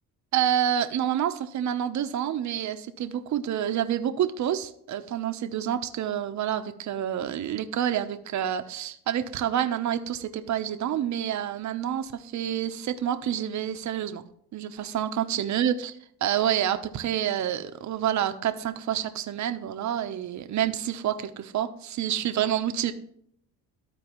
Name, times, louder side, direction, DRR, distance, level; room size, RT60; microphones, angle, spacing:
voice 1, 0.3-14.2 14.5-15.9 16.2-22.9, right 10 dB, 50° right, 9 dB, 0.8 m, -28 dB
13.5 x 4.6 x 3.0 m, 0.68 s
supercardioid pair, 85°, 36 cm